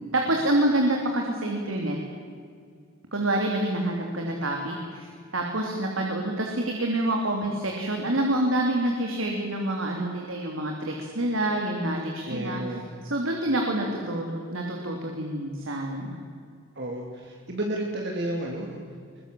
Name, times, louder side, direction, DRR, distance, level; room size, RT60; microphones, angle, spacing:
voice 1, 0.1-2.0 3.1-12.6 13.0-16.2, right 1 dB, 80° right, 1 dB, 3.1 m, -27 dB
voice 2, 12.3-12.9 16.8-18.8, right 1 dB, 55° right, 1 dB, 2.6 m, -32 dB
22.5 x 22.0 x 7.7 m, 2.2 s
head